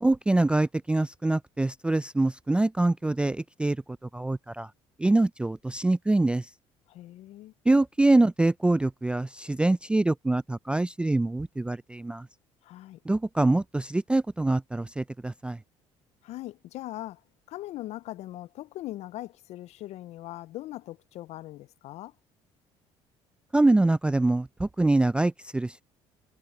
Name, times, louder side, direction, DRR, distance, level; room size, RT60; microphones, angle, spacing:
voice 1, 0.0-3.8 4.1-4.7 5.0-6.5 7.7-12.3 13.1-15.6 23.5-25.8, right 2 dB, 10° right, 0.3 m, -24 dB
voice 2, 6.9-7.5 12.6-13.0 16.2-17.2 17.5-22.1, left 15 dB, 65° left, 0.4 m, -40 dB
supercardioid pair, 85°, 12 cm